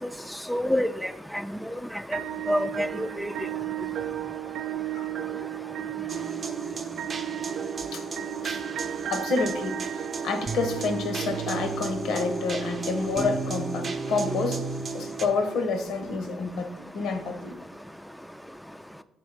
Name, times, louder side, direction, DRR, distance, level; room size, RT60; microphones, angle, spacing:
voice 1, 0.5-1.7 2.1-2.2 2.5-3.3, equal, ahead, 10 dB, 0.3 m, -27 dB
sound 1, 2.1-12.2, right 13 dB, 80° right, 0.4 m, -35 dB
sound 2, 6.1-15.3, right 4 dB, 45° right, 0.7 m, -33 dB
voice 2, 9.1-17.6, left 4 dB, 80° left, 6 dB, 0.9 m, -29 dB
6.2 x 3.4 x 4.8 m, 0.83 s
cardioid pair, 80°, 0 cm